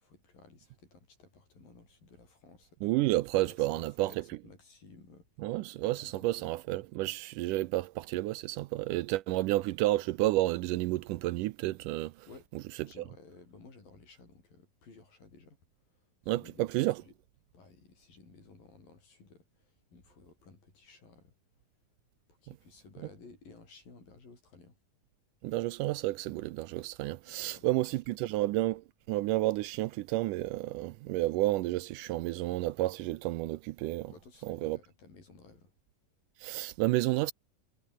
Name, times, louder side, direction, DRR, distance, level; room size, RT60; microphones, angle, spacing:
voice 1, 0.0-2.8 3.5-5.3 5.9-6.5 12.3-12.5 12.8-15.6 16.0-17.1 17.5-21.3 22.3-24.8 27.3-27.9 28.2-28.3 34.1-35.7, left 4 dB, 80° left, 9.6 m, -56 dB
voice 2, 2.8-4.2 5.4-12.1 16.3-17.0 25.4-34.1 34.4-34.8 36.4-37.3, right 17 dB, 80° right, 2.1 m, -31 dB
omnidirectional pair, 4.0 m